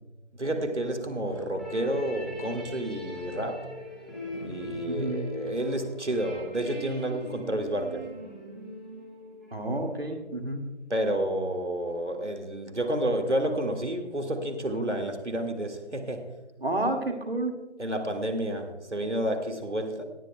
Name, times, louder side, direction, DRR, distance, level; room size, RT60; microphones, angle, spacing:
voice 1, 0.3-3.7 4.4-8.1 10.9-16.3 17.8-20.0, right 1 dB, 85° right, 1.9 m, -30 dB
sound 1, 1.0-5.1 5.5-5.6 6.1-6.8 7.1-7.2 7.6-7.7, left 1 dB, 30° left, 0.9 m, -43 dB
sound 2, 1.5-10.0, left 1 dB, ahead, 0.9 m, -41 dB
voice 2, 4.9-5.2 9.5-10.7 16.6-17.6, right 2 dB, 60° right, 2.1 m, -30 dB
19.0 x 10.5 x 2.2 m
figure-of-eight pair, 170°, 34 cm